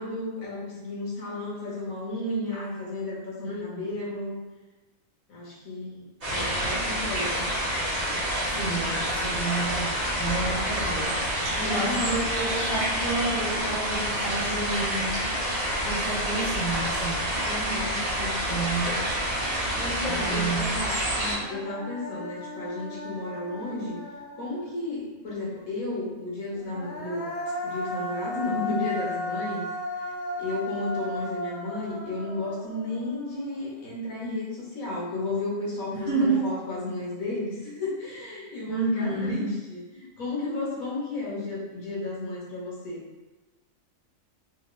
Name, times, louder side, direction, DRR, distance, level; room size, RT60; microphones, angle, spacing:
voice 1, 0.0-4.3 5.3-7.5 11.5-12.2 17.4-18.5 19.7-24.0 24.4-27.3 27.6-29.6 30.0-30.1 30.4-43.0, left 2 dB, 90° left, -5 dB, 1.6 m, -33 dB
voice 2, 3.4-4.0 8.5-11.2 11.6-15.3 15.8-17.3 18.5-19.0 20.1-20.7 35.9-36.4 38.7-39.6, right 3 dB, 40° left, -16 dB, 1.6 m, -30 dB
sound 1, 6.2-21.3, equal, 35° right, 1.1 m, -28 dB
Human voice, 20.8-20.9 21.2-24.9 26.5-33.8, left 1 dB, 70° left, 1.0 m, -35 dB
3.5 x 2.9 x 3.2 m, 1.1 s
omnidirectional pair, 1.4 m